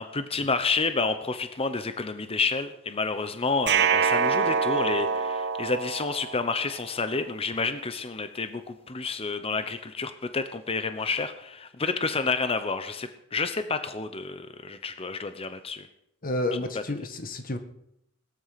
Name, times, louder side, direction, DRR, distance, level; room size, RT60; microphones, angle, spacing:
voice 1, 0.0-15.9, left 4 dB, 30° left, 10 dB, 0.9 m, -29 dB
sound 1, 3.7-6.7, right 6 dB, 60° right, 1.0 m, -25 dB
voice 2, 16.2-17.6, left 1 dB, 45° left, 8 dB, 1.6 m, -30 dB
18.5 x 13.0 x 5.9 m, 0.80 s
head